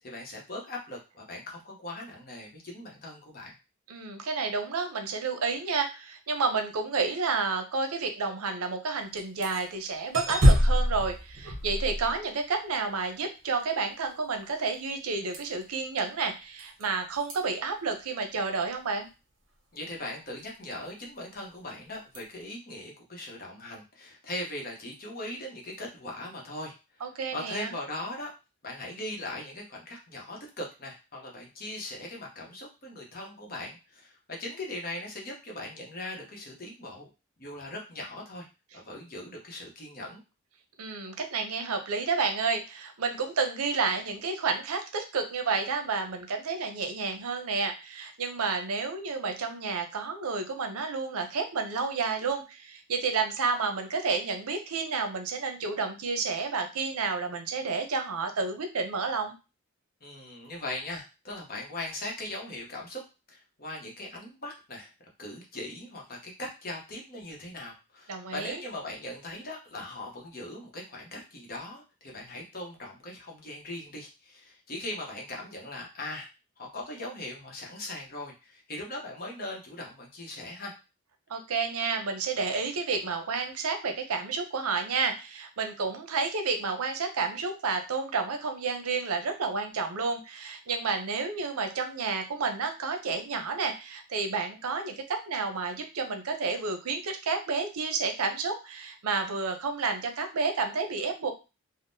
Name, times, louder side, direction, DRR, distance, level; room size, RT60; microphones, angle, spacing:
voice 1, 0.0-3.5 19.7-26.7 27.3-28.3 28.6-37.1 37.4-38.5 38.7-40.2 60.0-63.0 63.3-64.9 65.2-76.3 76.6-80.8, left 1 dB, 40° left, 0 dB, 0.8 m, -40 dB
voice 2, 3.9-19.1 27.0-27.7 40.8-59.3 68.1-68.6 81.3-101.3, right 4 dB, 85° right, 6 dB, 0.6 m, -30 dB
sound 1, 9.2-9.6 10.1-12.5 15.3-15.6 16.6-16.8 17.2-17.3 22.1-22.2, equal, 55° right, 0.9 m, -24 dB
3.5 x 2.0 x 2.6 m, 0.29 s
head